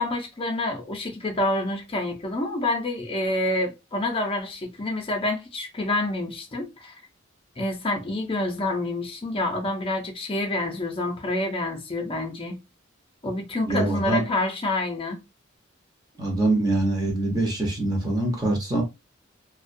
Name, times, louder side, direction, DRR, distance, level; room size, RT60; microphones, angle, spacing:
voice 1, 0.0-6.9 7.6-12.6 13.2-15.2, left 2 dB, 25° left, 0.6 m, -27 dB
voice 2, 13.7-14.2 16.2-18.8, right 2 dB, 20° right, 0.8 m, -24 dB
2.3 x 2.2 x 2.5 m
head